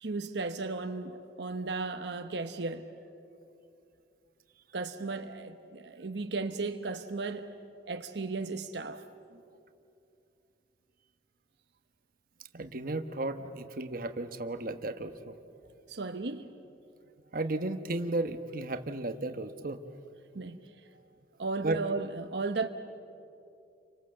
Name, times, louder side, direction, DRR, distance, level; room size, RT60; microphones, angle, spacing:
voice 1, 0.0-2.9 4.7-7.5 7.9-9.0 15.9-16.5 20.3-20.6 21.4-22.7, right 3 dB, 70° right, 1.0 m, -35 dB
voice 2, 12.5-15.4 17.3-19.8 21.6-21.8, right 2 dB, 50° right, 1.1 m, -34 dB
29.5 x 25.0 x 7.7 m
head